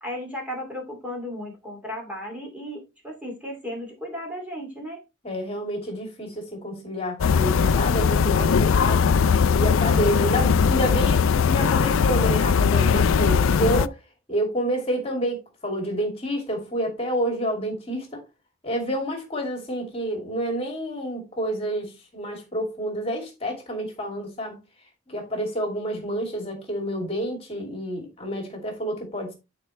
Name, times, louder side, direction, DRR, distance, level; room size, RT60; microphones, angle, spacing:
voice 1, 0.0-5.0, equal, 5° right, 2.4 m, -35 dB
voice 2, 5.2-14.0 14.3-18.2 18.6-24.6 25.1-29.3, equal, 30° left, 2.5 m, -29 dB
sound 1, 7.2-13.9, left 6 dB, 70° left, 0.4 m, -20 dB
11.0 x 4.8 x 3.2 m
head